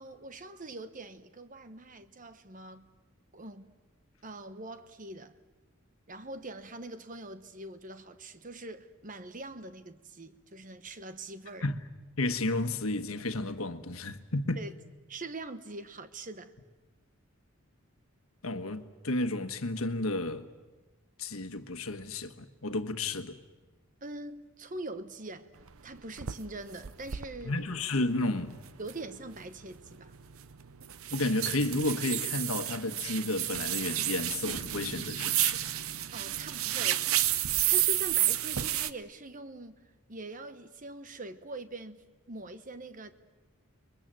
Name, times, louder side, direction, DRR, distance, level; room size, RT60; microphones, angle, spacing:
voice 1, 0.0-2.9 3.3-3.7 4.2-5.3 6.1-11.7 14.6-14.7 15.1-16.5 24.0-25.5 25.8-27.6 28.8-30.1 36.1-37.0 37.6-39.8 40.1-43.1, right 2 dB, 40° right, 1.2 m, -43 dB
voice 2, 12.2-14.6 18.4-20.4 21.2-23.4 27.4-28.6 31.1-35.7, left 2 dB, 80° left, 1.5 m, -32 dB
sound 1, 25.7-25.8 26.2-26.3 26.8-27.3 27.7-27.8 28.4-28.5 28.7-38.9, right 12 dB, 80° right, 0.8 m, -31 dB
30.0 x 22.0 x 7.7 m
head